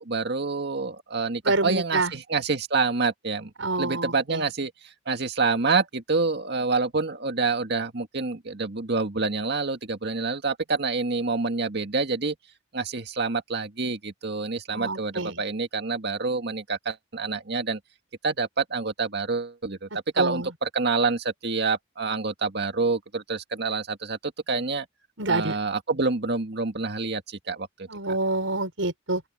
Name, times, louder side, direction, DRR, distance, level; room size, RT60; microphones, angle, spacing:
voice 1, 0.0-3.5 3.8-12.4 12.7-17.8 18.2-19.9 20.1-24.9 25.3-27.9, right 4 dB, 60° right, 2.0 m, -27 dB
voice 2, 1.4-2.1 3.6-4.4 14.7-15.4 20.2-20.5 25.2-25.6 27.9-29.2, right 2 dB, 90° right, 5.7 m, -27 dB
open air
head